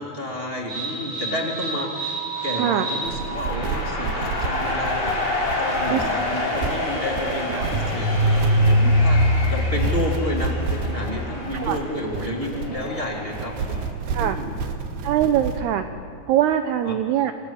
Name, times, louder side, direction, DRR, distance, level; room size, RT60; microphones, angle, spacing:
voice 1, 0.0-5.1 5.6-13.9 14.2-14.6 16.8-16.9, left 1 dB, 25° right, 0 dB, 1.1 m, -31 dB
sound 1, 0.7-11.3, equal, 45° right, 6.6 m, -25 dB
sound 2, 2.4-13.9, left 2 dB, 30° left, 5.9 m, -29 dB
sound 3, 3.0-15.6, right 5 dB, 60° right, 3.4 m, -31 dB
voice 2, 15.0-15.9 16.3-17.3, right 11 dB, 90° right, 9 dB, 2.3 m, -22 dB
28.0 x 26.5 x 7.2 m, 2.3 s
omnidirectional pair, 5.8 m